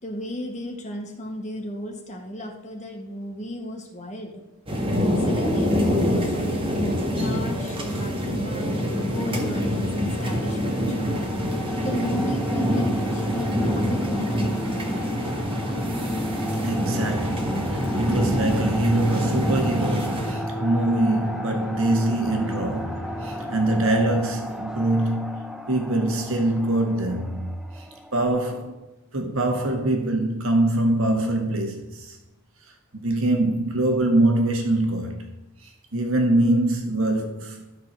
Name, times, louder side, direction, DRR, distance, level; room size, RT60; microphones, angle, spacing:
voice 1, 0.0-4.4 5.2-11.1 11.4-15.1, equal, 35° left, 1.9 m, -35 dB
sound 1, 4.7-20.3, equal, 25° right, 1.8 m, -25 dB
sound 2, 8.6-23.8, left 1 dB, 90° left, 2.0 m, -34 dB
sound 3, 10.6-28.3, equal, 5° right, 0.6 m, -37 dB
voice 2, 16.6-27.8 28.1-28.9 29.1-32.2 32.9-35.2 35.9-37.6, right 1 dB, 75° right, 1.6 m, -24 dB
13.0 x 4.5 x 6.5 m
head